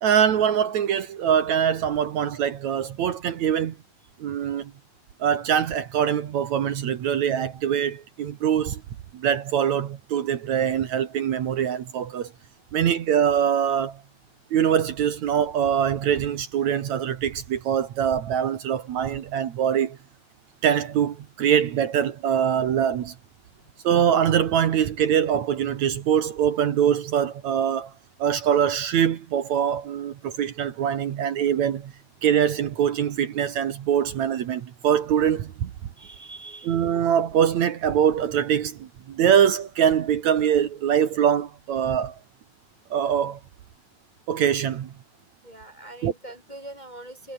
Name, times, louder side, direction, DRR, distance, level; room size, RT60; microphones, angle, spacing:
voice 1, 0.0-3.8 4.2-4.7 5.2-8.8 9.1-12.3 12.7-14.0 14.5-20.0 20.6-23.1 23.8-27.9 28.2-31.9 32.2-35.7 36.6-42.2 42.9-43.4 44.3-44.9 46.0-46.1, right 9 dB, 60° right, 2.5 m, -23 dB
voice 2, 36.0-36.9 45.4-47.3, right 2 dB, 15° left, 2.2 m, -43 dB
omnidirectional pair, 3.9 m